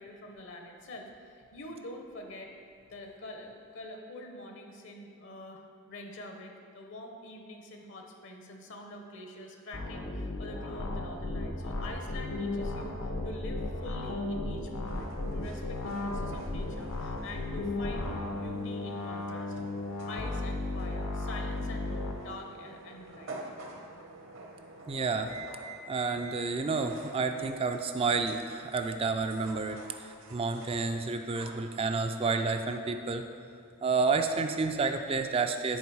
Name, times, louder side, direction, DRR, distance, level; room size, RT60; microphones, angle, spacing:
voice 1, 0.0-2.5 2.9-19.5 20.1-23.4, left 1 dB, 55° left, 3 dB, 0.7 m, -45 dB
sound 1, 9.7-22.1, left 2 dB, 90° left, 1.0 m, -35 dB
sound 2, 14.8-33.8, right 2 dB, 60° right, 1.0 m, -49 dB
voice 2, 24.9-25.3 25.9-33.3 33.8-35.8, right 4 dB, 25° right, 7 dB, 0.3 m, -30 dB
10.0 x 4.5 x 4.7 m, 2.3 s
head